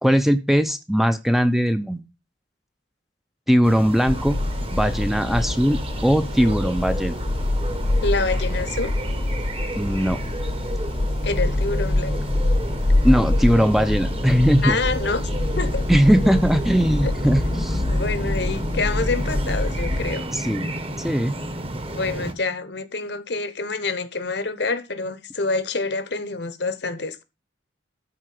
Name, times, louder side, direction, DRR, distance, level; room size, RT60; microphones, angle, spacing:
voice 1, 0.0-2.0 3.5-4.4 4.7-7.1 9.8-10.2 13.0-14.8 15.9-17.8 20.3-20.7 21.0-21.4, equal, ahead, 0.7 m, -19 dB
sound 1, 3.6-22.3, right 1 dB, 30° right, 1.4 m, -32 dB
sound 2, 4.1-20.2, left 1 dB, 40° left, 0.7 m, -25 dB
voice 2, 8.0-8.9 11.2-12.2 14.6-15.2 15.6-15.9 17.0-17.1 17.9-20.3 21.9-27.2, left 3 dB, 60° left, 1.1 m, -27 dB
13.0 x 4.4 x 7.7 m
head